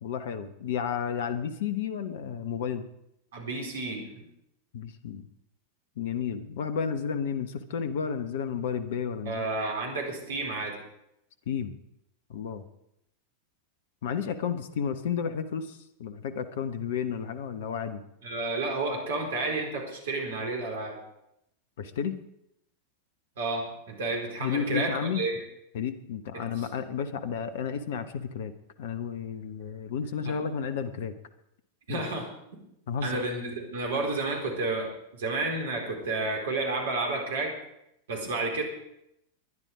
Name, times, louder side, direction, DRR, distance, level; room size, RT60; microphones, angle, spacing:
voice 1, 0.0-2.8 4.7-5.3 6.0-9.5 11.5-11.7 12.3-12.6 14.0-18.0 21.8-22.1 24.4-25.2 25.7-28.5 28.8-31.1 31.9-32.1 32.9-33.2, left 7 dB, 55° left, 12 dB, 1.1 m, -32 dB
voice 2, 3.3-4.2 9.2-10.8 18.2-21.0 23.4-25.3 26.3-26.7 30.2-30.3 31.9-32.3 33.0-37.5 38.1-38.6, right 2 dB, 60° right, 2 dB, 4.6 m, -31 dB
21.0 x 11.0 x 4.9 m, 0.80 s
figure-of-eight pair, 90°, 0 cm